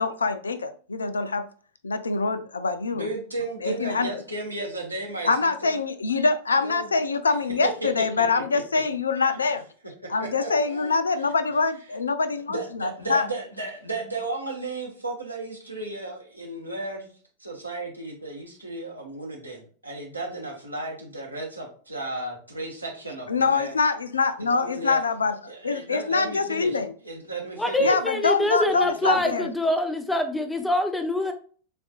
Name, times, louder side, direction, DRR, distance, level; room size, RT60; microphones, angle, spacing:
voice 1, 0.0-1.5 1.8-3.1 3.6-4.2 5.2-9.6 10.1-13.3 23.3-26.9 27.8-29.5, left 4 dB, 75° left, 0.4 m, -24 dB
voice 2, 2.9-5.8 6.6-6.9 7.8-8.0 8.3-8.8 10.2-10.9 11.2-11.3 12.5-23.8 24.4-25.0 25.5-27.9 28.7-29.2, right 2 dB, 85° right, 1.1 m, -34 dB
voice 3, 27.6-31.3, left 1 dB, 5° left, 0.6 m, -25 dB
6.8 x 2.5 x 2.4 m
figure-of-eight pair, 90°, 0 cm